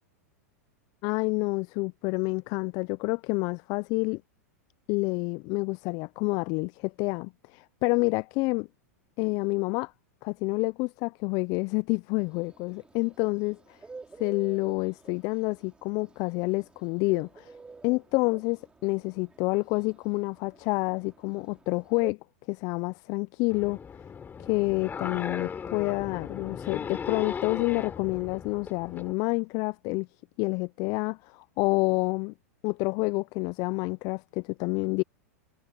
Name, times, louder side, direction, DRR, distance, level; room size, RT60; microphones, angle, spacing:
voice 1, 1.0-4.2 4.9-8.7 9.2-9.9 10.2-13.8 14.2-17.5 17.8-22.2 22.5-23.8 24.4-30.1 30.4-32.3 32.6-35.0, left 27 dB, 45° left, 0.5 m, -28 dB
Bird, 12.2-22.1, right 4 dB, 10° right, 5.5 m, -46 dB
sound 1, 23.5-29.1, left 6 dB, 20° left, 4.7 m, -37 dB
hypercardioid pair, 110°, 9 cm